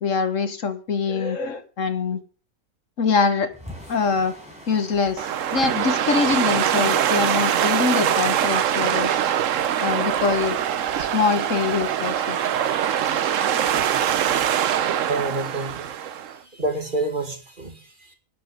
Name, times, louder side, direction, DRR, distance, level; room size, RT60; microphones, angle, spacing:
voice 1, 0.0-2.2 3.0-3.5 3.9-4.3 4.7-9.2 9.8-10.6 11.0-12.4, left 5 dB, 60° left, 11 dB, 1.5 m, -24 dB
sound 1, 3.5-14.2, equal, 5° right, 5.3 m, -44 dB
sound 2, 5.2-16.3, right 10 dB, 65° right, 1.1 m, -23 dB
voice 2, 15.1-15.9 16.5-18.1, right 2 dB, 35° right, 4 dB, 2.4 m, -28 dB
10.0 x 9.4 x 6.7 m, 0.38 s
omnidirectional pair, 1.5 m